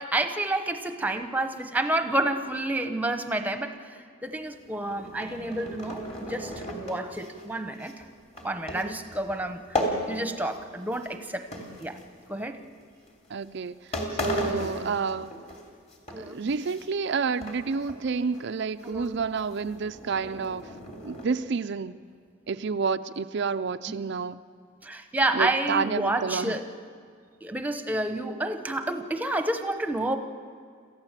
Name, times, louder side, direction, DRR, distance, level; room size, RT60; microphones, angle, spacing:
voice 1, 0.0-8.0 8.4-11.5 11.8-12.0 12.3-12.6 16.1-16.4 18.8-19.1 23.9-24.0 24.8-26.6 27.4-30.2, right 1 dB, 10° right, 7 dB, 1.0 m, -29 dB
sound 1, 4.5-10.6 10.9-12.4 13.1-13.3 13.7-13.8 13.9-15.6 15.9-17.1 17.4-18.0 18.3-18.4 18.8-21.3, left 1 dB, 30° left, 3.0 m, -35 dB
voice 2, 13.3-15.4 16.2-20.7 21.0-22.0 22.5-24.4 25.3-26.6, right 5 dB, 55° right, 10 dB, 0.4 m, -29 dB
27.0 x 15.0 x 7.4 m, 2.2 s
head